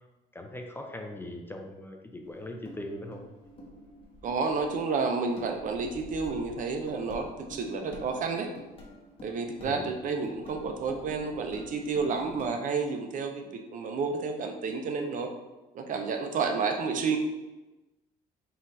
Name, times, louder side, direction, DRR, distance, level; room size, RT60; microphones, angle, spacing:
voice 1, 0.3-3.2 9.6-9.9, left 1 dB, 15° left, 3 dB, 0.4 m, -40 dB
sound 1, 2.2-12.5, left 1 dB, 35° left, 1.0 m, -48 dB
voice 2, 4.2-8.5 9.2-13.5 13.7-15.3 15.7-17.2, right 4 dB, 50° right, 4 dB, 0.6 m, -30 dB
4.1 x 2.5 x 4.0 m, 1.1 s
cardioid pair, 110°, 17 cm